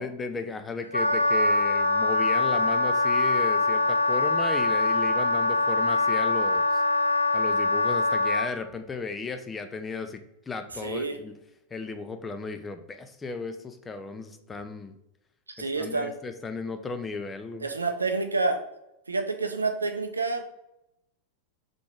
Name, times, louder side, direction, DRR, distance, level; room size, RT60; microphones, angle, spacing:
voice 1, 0.0-6.8 7.3-11.3 11.7-15.0 15.6-17.7, left 4 dB, 15° left, 7 dB, 0.4 m, -35 dB
Wind instrument woodwind instrument, 0.9-8.5, left 2 dB, 85° left, 0.4 m, -23 dB
voice 2, 10.7-11.2 15.6-16.1 17.6-18.6 19.1-20.4, right 3 dB, 80° right, 6 dB, 0.5 m, -28 dB
3.7 x 3.5 x 3.4 m, 0.86 s
figure-of-eight pair, 90°, 0 cm